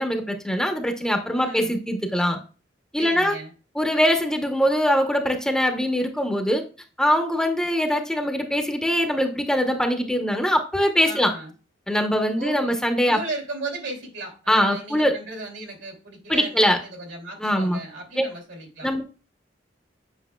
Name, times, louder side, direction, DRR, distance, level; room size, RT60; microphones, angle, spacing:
voice 1, 0.0-2.4 2.9-3.4 3.7-6.6 7.0-11.3 11.9-13.2 14.5-15.1 16.3-16.8 17.4-17.8 18.2-18.3 18.8-19.0, equal, 5° left, 4 dB, 0.8 m, -22 dB
voice 2, 1.4-1.7 3.0-3.5 11.0-11.5 12.4-12.7 13.0-18.9, right 2 dB, 80° right, 1 dB, 2.9 m, -36 dB
8.1 x 5.9 x 2.2 m, 0.34 s
head